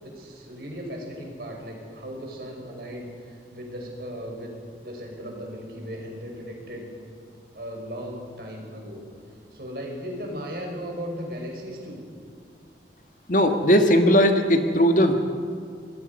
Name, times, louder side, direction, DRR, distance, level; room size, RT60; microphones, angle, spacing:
voice 1, 0.0-4.5 4.8-6.9 7.5-9.0 9.5-12.0, equal, 60° right, 0 dB, 5.5 m, -36 dB
voice 2, 13.3-15.1, equal, 45° left, 5 dB, 1.6 m, -18 dB
26.5 x 20.5 x 5.4 m, 2.2 s
head